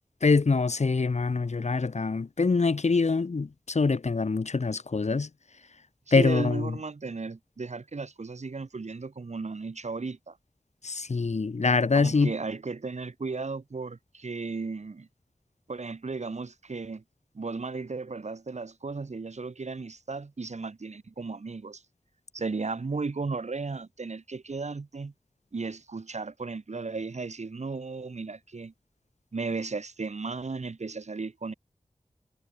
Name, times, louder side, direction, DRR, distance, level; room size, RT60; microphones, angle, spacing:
voice 1, 0.2-5.3 6.1-6.8 10.8-12.3, left 4 dB, 85° left, 2.1 m, -24 dB
voice 2, 6.1-10.4 11.9-15.1 15.7-17.0 17.3-21.8 22.3-25.1 25.5-28.7 29.3-31.5, right 4 dB, 90° right, 4.8 m, -35 dB
wide cardioid pair, 60°, 11 cm